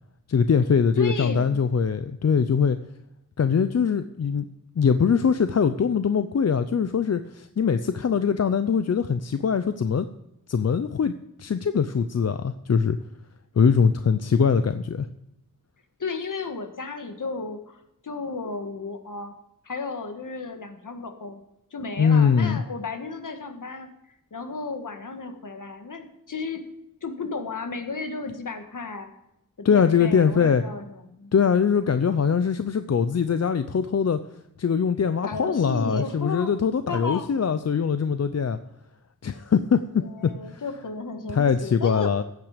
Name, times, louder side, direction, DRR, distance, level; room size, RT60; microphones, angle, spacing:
voice 1, 0.3-2.8 3.4-4.5 4.8-10.1 10.5-11.1 11.4-13.0 13.6-15.1 22.0-22.6 29.6-30.6 31.3-34.2 34.6-38.6 39.2-40.6 41.3-42.2, left 6 dB, 50° left, 10 dB, 0.6 m, -22 dB
voice 2, 1.0-1.6 16.0-17.8 18.0-19.4 19.6-21.4 21.7-23.9 24.3-26.6 27.0-29.1 29.6-31.3 35.2-36.5 36.9-37.3 40.0-42.1, left 4 dB, 65° left, 6 dB, 1.7 m, -33 dB
15.5 x 9.0 x 5.1 m, 0.86 s
wide cardioid pair, 115°, 34 cm